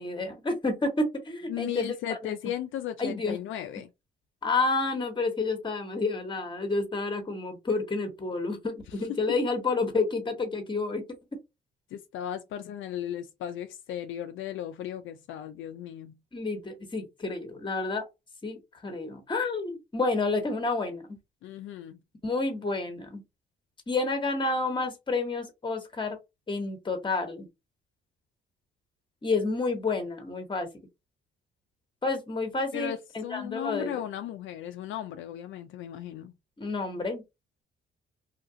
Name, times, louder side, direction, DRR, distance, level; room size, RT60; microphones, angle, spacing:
voice 1, 0.0-2.3 3.0-3.4 4.4-11.0 16.3-18.1 18.4-21.2 22.2-23.2 23.9-26.2 26.5-27.5 29.2-30.7 32.0-33.9 36.6-37.2, left 3 dB, 25° left, 1.1 m, -30 dB
voice 2, 1.5-3.9 9.1-9.2 11.9-16.2 21.4-22.0 32.7-36.3, left 10 dB, 75° left, 0.4 m, -36 dB
2.8 x 2.4 x 2.7 m
cardioid pair, 90°, 20 cm